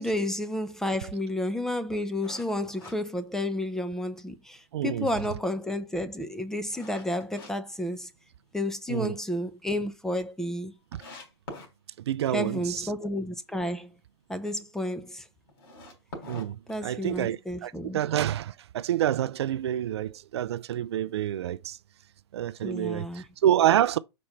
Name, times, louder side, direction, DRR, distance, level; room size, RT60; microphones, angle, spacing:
voice 1, 0.0-8.1 8.5-10.7 12.3-13.9 14.3-15.2 16.7-18.0 22.6-23.2, left 1 dB, 5° left, 0.7 m, -31 dB
sound 1, 2.2-3.9 4.4-4.5 5.0-7.5 7.9-8.7 9.0-9.1 9.5-9.6 9.7-9.8 10.5-10.6 10.9-11.7 15.5-17.3, left 2 dB, 60° left, 4.0 m, -45 dB
voice 2, 4.7-5.1 8.9-9.2 12.1-12.9 16.3-16.6 16.8-21.8 22.3-24.0, right 11 dB, 75° right, 0.4 m, -27 dB
5.3 x 4.3 x 5.7 m
hypercardioid pair, 135°, 14 cm